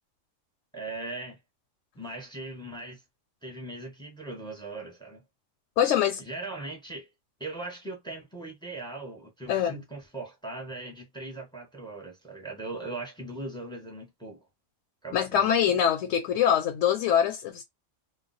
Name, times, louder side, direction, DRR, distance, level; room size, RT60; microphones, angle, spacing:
voice 1, 0.7-1.4 1.9-3.0 3.4-5.2 6.2-7.1 7.4-14.5 15.0-15.8, right 2 dB, 5° left, 0.7 m, -39 dB
voice 2, 5.8-6.2 9.5-9.8 15.1-17.6, left 9 dB, 75° left, 0.9 m, -24 dB
2.3 x 2.2 x 3.9 m
omnidirectional pair, 1.3 m